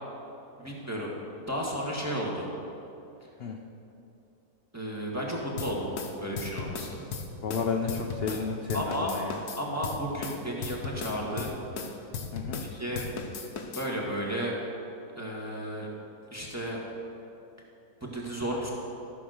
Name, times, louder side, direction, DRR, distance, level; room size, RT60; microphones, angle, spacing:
voice 1, 0.6-1.1 1.5-2.5 4.7-5.9 6.2-7.0 8.3-8.4 8.7-9.1 9.6-11.5 12.7-13.0 13.7-14.5 15.2-15.9 16.3-16.8 18.0-18.7, equal, 10° right, -4 dB, 1.6 m, -33 dB
sound 1, 5.6-8.4 8.7-12.7 12.9-13.9, left 5 dB, 85° left, 1.5 m, -36 dB
voice 2, 7.4-9.4 12.3-12.6, left 5 dB, 55° left, 2 dB, 0.7 m, -32 dB
13.5 x 6.0 x 6.4 m, 2.8 s
omnidirectional pair, 1.6 m